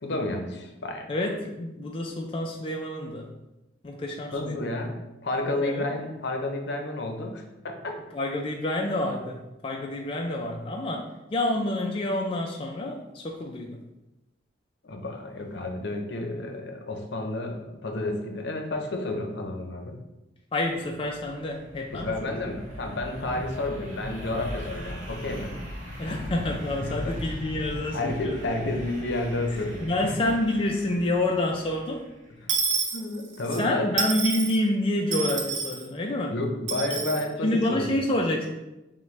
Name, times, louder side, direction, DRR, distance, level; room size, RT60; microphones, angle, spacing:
voice 1, 0.0-1.1 4.3-5.0 5.2-8.0 14.8-20.0 21.9-25.6 26.8-27.1 27.9-30.2 32.3-32.5 32.9-33.9 36.3-38.0, left 2 dB, 70° left, 3 dB, 0.7 m, -31 dB
voice 2, 1.1-3.3 3.8-4.7 5.6-5.9 8.1-13.8 20.5-22.3 23.2-23.3 26.0-28.3 28.6-28.7 29.8-32.0 33.5-36.3 37.4-38.5, left 1 dB, 30° left, 1 dB, 0.4 m, -28 dB
sound 1, 20.8-32.4, equal, 45° right, 1.0 m, -39 dB
Dishes pots and pans / Coin (dropping), 32.5-33.6 34.0-34.6 35.1-35.8 36.7-37.2, right 5 dB, 85° right, 0.7 m, -28 dB
5.8 x 2.2 x 3.2 m, 0.98 s
head